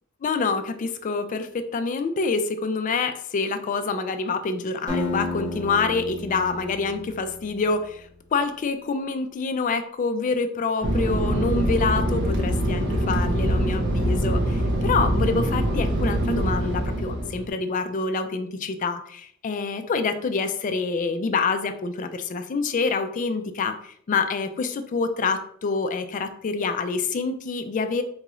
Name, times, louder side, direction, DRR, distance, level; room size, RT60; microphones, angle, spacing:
voice 1, 0.2-28.0, left 4 dB, 40° left, 8 dB, 0.3 m, -26 dB
Acoustic guitar, 4.9-7.9, left 2 dB, 20° right, 1.0 m, -32 dB
Fixed-wing aircraft airplane, 10.8-17.5, right 1 dB, 55° right, 0.6 m, -24 dB
3.8 x 2.3 x 3.0 m, 0.63 s
head